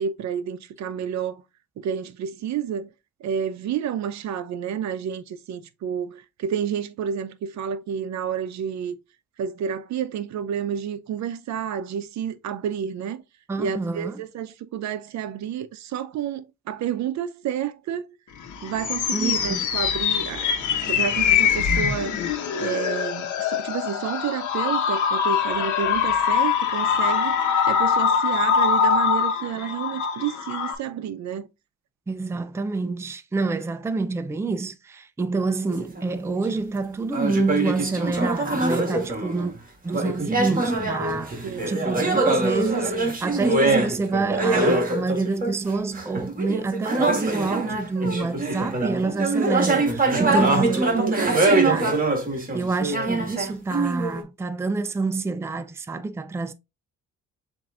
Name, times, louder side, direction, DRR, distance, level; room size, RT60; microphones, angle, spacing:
voice 1, 0.0-1.4 1.8-2.9 3.2-9.0 9.4-13.2 13.6-18.2 18.6-20.5 20.9-22.2 22.5-27.4 27.7-31.5 41.4-41.7 50.2-51.4, right 8 dB, 65° right, 0.6 m, -30 dB
voice 2, 13.5-14.2 19.1-19.7 32.1-39.5 39.8-51.9 52.3-56.5, right 3 dB, 10° right, 0.4 m, -27 dB
sound 1, 18.4-30.8, left 7 dB, 80° left, 1.1 m, -23 dB
sound 2, 35.7-36.6 37.1-39.6 39.9-54.2, right 2 dB, 30° right, 1.7 m, -24 dB
7.3 x 2.7 x 2.4 m
cardioid pair, 90°, 30 cm